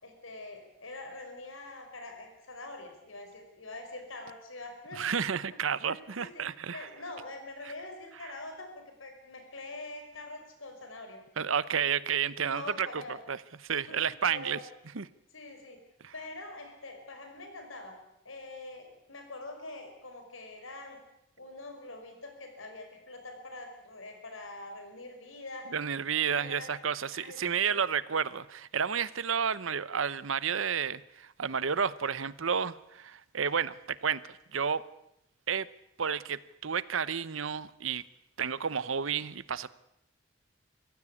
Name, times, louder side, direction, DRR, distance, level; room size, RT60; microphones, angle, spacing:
voice 1, 0.0-5.0 5.5-5.6 5.9-6.5 6.7-11.2 12.3-13.2 13.9-14.0 14.2-14.6 15.3-15.8 16.1-18.0 18.2-21.0 21.4-25.7 26.1-26.7 27.1-27.8, left 2 dB, 85° left, 5 dB, 5.2 m, -44 dB
voice 2, 5.0-6.9 11.4-13.0 13.3-13.4 13.6-14.6 14.9-15.1 16.0-16.1 25.7-34.8 35.5-35.7 36.0-38.0 38.4-39.7, right 7 dB, 85° right, 18 dB, 0.8 m, -31 dB
24.0 x 15.5 x 8.4 m, 0.82 s
head